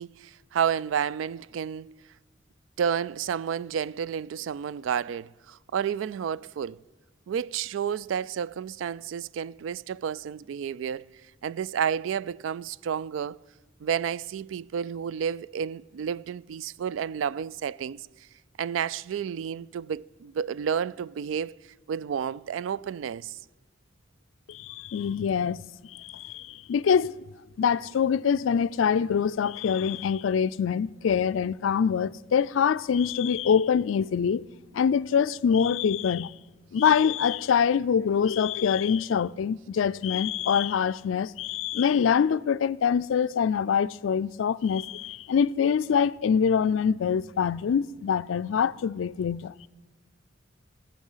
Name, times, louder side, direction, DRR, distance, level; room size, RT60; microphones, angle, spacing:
voice 1, 0.0-2.0 2.8-6.8 7.3-11.0 11.4-13.4 13.8-18.1 18.6-21.6 21.9-23.4, right 8 dB, 70° right, 0.3 m, -31 dB
voice 2, 24.5-25.6 25.9-27.1 27.6-34.4 34.7-36.3 36.7-49.7, left 7 dB, 75° left, 0.4 m, -24 dB
18.5 x 7.3 x 5.6 m
head